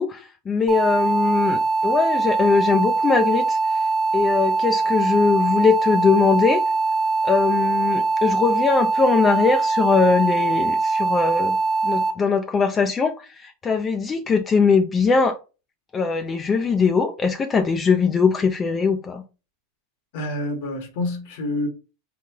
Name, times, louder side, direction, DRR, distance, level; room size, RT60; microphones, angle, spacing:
voice 1, 0.0-3.8 4.1-6.6 7.2-11.6 11.8-15.4 15.9-19.2, left 5 dB, 25° left, 0.4 m, -21 dB
sound 1, 0.7-12.1, right 3 dB, 10° right, 1.1 m, -22 dB
voice 2, 20.1-21.7, left 1 dB, 65° left, 1.0 m, -27 dB
3.8 x 2.2 x 2.8 m
supercardioid pair, 115°, 0 cm